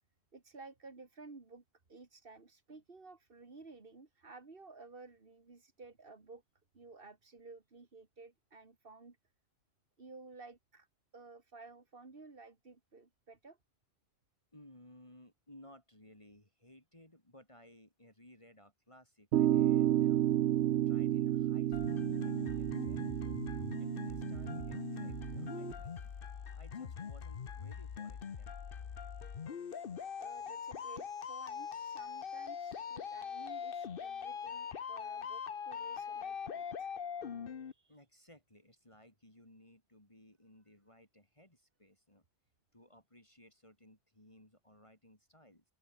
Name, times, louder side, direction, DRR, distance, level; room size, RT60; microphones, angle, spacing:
voice 1, 0.3-1.6 1.9-6.4 6.7-9.2 10.0-10.9 11.1-13.6 30.2-36.9 37.6-38.0, right 3 dB, 55° right, 2.4 m, -54 dB
voice 2, 14.5-20.2 20.9-23.4 23.8-26.0 26.5-28.6 31.7-31.9 37.9-42.2 42.7-45.6, left 1 dB, 30° left, 4.2 m, -60 dB
sound 1, 19.3-25.7, right 12 dB, 85° right, 0.9 m, -32 dB
sound 2, 21.7-37.7, left 7 dB, 55° left, 1.1 m, -42 dB
open air
omnidirectional pair, 1.1 m